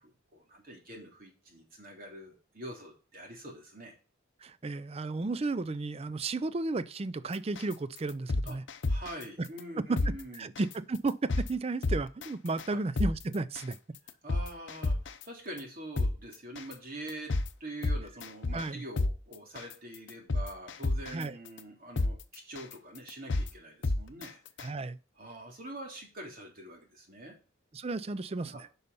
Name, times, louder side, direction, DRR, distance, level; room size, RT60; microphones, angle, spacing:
voice 1, 0.0-3.9 8.4-8.6 8.9-10.5 12.7-12.8 14.2-24.4 25.2-27.3 28.5-28.6, right 1 dB, 45° right, 3.0 m, -45 dB
voice 2, 4.4-8.6 9.4-9.5 9.9-10.0 10.3-13.8 18.5-18.8 21.1-21.4 24.6-25.0 27.7-28.7, right 3 dB, 30° right, 0.4 m, -33 dB
sound 1, 7.6-7.7 8.1-9.2 9.6-9.7 10.0-10.1 10.6-10.7 11.1-11.5 11.8-12.3 12.6-12.7 13.0-13.1 13.6-13.7 14.1-15.2 15.6-15.7 16.0-16.1 16.6-16.7 17.1-17.5 17.8-18.7 19.0-19.1 19.6-19.7 20.1-21.2 21.6-21.7 22.0-22.1 22.6-22.7 23.1-23.5 23.8-24.3 24.6-24.7, left 2 dB, 60° left, 0.7 m, -29 dB
9.5 x 5.6 x 5.5 m
head